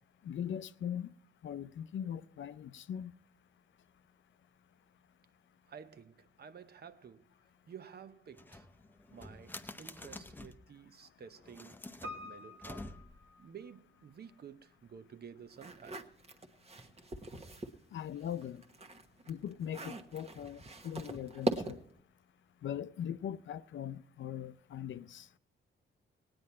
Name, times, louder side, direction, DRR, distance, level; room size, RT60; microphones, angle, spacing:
voice 1, 0.2-1.1 1.4-3.1 17.9-18.6 19.3-21.8 22.6-25.3, left 9 dB, 70° left, 0.6 m, -40 dB
voice 2, 5.7-7.3 7.7-8.7 9.1-11.8 12.2-12.9 13.4-16.0, right 7 dB, 50° right, 0.8 m, -52 dB
sound 1, 8.3-10.7 11.4-13.3, left 2 dB, 10° left, 0.8 m, -49 dB
Piano, 12.0-14.1 14.3-14.4, left 2 dB, 75° right, 1.6 m, -48 dB
sound 2, 15.5-17.8 18.2-22.0, right 2 dB, 30° right, 1.2 m, -41 dB
18.5 x 9.7 x 4.3 m
cardioid pair, 90°, 21 cm